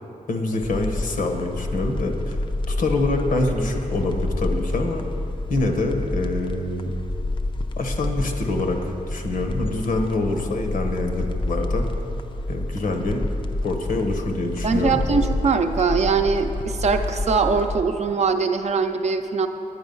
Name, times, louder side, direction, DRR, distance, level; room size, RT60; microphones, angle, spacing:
voice 1, 0.3-2.4 2.7-5.0 5.5-6.9 7.8-11.9 12.5-13.2 13.6-15.0, left 2 dB, 75° left, 4 dB, 1.1 m, -25 dB
sound 1, 0.6-17.8, left 2 dB, 35° left, 0.5 m, -28 dB
voice 2, 14.6-19.5, right 5 dB, 50° right, 5 dB, 0.6 m, -22 dB
10.0 x 9.7 x 5.4 m, 2.8 s
wide cardioid pair, 170°, 14 cm